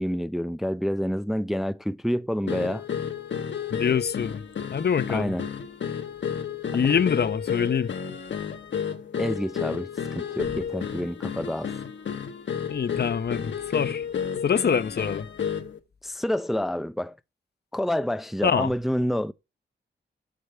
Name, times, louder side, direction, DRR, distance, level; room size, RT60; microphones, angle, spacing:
voice 1, 0.0-2.9 5.1-5.5 9.2-11.7 16.0-17.2 17.7-19.3, equal, ahead, 0.5 m, -28 dB
sound 1, 2.5-15.8, left 7 dB, 75° left, 1.2 m, -32 dB
voice 2, 3.7-4.4 4.7-5.3 6.7-7.9 12.7-14.0 14.4-15.3 18.4-18.7, left 7 dB, 60° left, 0.8 m, -25 dB
8.3 x 6.4 x 6.7 m
cardioid pair, 65°, 19 cm